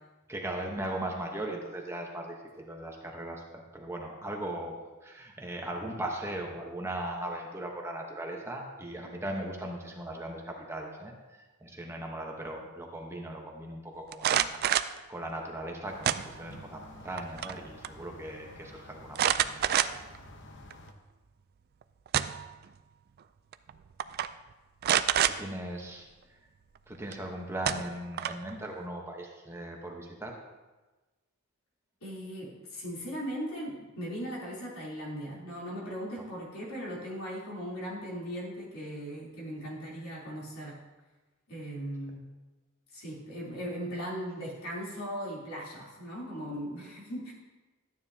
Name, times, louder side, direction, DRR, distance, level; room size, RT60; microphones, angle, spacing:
voice 1, 0.3-14.5 15.1-19.7 25.2-26.4 26.9-30.4, right 1 dB, 10° right, 0 dB, 1.0 m, -38 dB
sound 1, 14.1-15.0 16.0-16.7 17.1-17.6 17.8-17.9 19.2-20.2 20.7-20.8 21.8-22.5 23.5-23.7 24.0-24.3 24.8-25.4 27.1-27.2 27.7-28.5, right 10 dB, 45° right, 0.3 m, -27 dB
sound 2, 15.9-20.9, left 2 dB, 55° left, 0.9 m, -51 dB
voice 2, 32.0-40.7 41.5-42.2 42.9-47.3, equal, 75° left, -5 dB, 3.3 m, -38 dB
13.0 x 9.4 x 2.8 m, 1.2 s
head